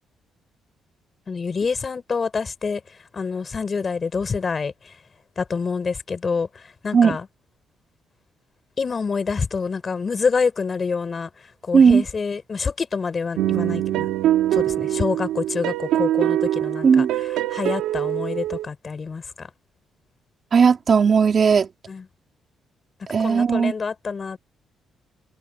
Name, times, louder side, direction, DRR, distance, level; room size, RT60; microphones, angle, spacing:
voice 1, 1.3-2.8 3.1-4.7 5.4-7.3 8.8-11.3 11.6-14.1 14.5-17.1 17.5-19.5 21.9-22.1 23.2-24.4, left 5 dB, 35° left, 5.4 m, -26 dB
voice 2, 11.7-12.0 16.8-17.1 20.5-21.7 23.1-23.7, right 6 dB, 45° right, 2.8 m, -16 dB
sound 1, 13.3-18.7, right 13 dB, 90° right, 2.6 m, -23 dB
cardioid pair, 90°, 0 cm